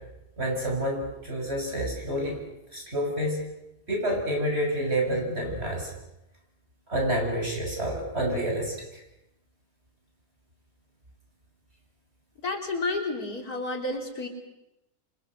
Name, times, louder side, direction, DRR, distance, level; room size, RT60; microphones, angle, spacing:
voice 1, 0.4-2.4 2.7-3.4 3.9-5.9 6.9-8.7, right 1 dB, 40° right, 1 dB, 7.9 m, -28 dB
voice 2, 12.4-14.3, left 2 dB, 75° left, 2 dB, 4.1 m, -30 dB
28.5 x 26.5 x 6.5 m, 0.89 s
omnidirectional pair, 1.6 m